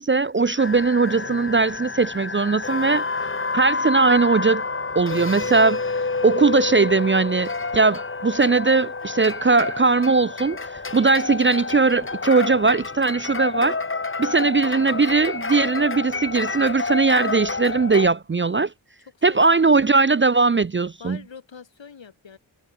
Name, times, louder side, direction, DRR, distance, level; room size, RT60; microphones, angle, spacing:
voice 1, 0.0-3.0 3.5-4.6 5.0-5.8 6.2-10.6 10.9-13.8 14.2-18.7 19.2-21.2, right 4 dB, 25° right, 0.6 m, -19 dB
sound 1, 0.6-18.1, left 4 dB, 25° left, 1.4 m, -29 dB
voice 2, 14.2-14.6 19.3-20.1 21.0-22.4, left 6 dB, 70° left, 4.9 m, -44 dB
cardioid pair, 55°, 47 cm